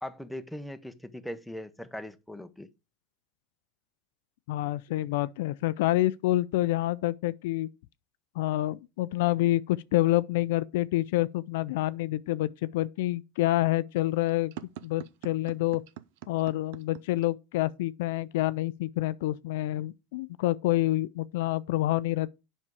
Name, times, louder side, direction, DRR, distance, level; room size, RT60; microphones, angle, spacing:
voice 1, 0.0-2.7, left 1 dB, ahead, 0.8 m, -40 dB
voice 2, 4.5-7.7 8.4-14.5 14.8-15.8 16.3-22.3, left 16 dB, 75° left, 0.4 m, -27 dB
sound 1, 13.9-17.3, right 12 dB, 70° right, 0.5 m, -44 dB
7.4 x 5.4 x 4.7 m
supercardioid pair, 105°, 0 cm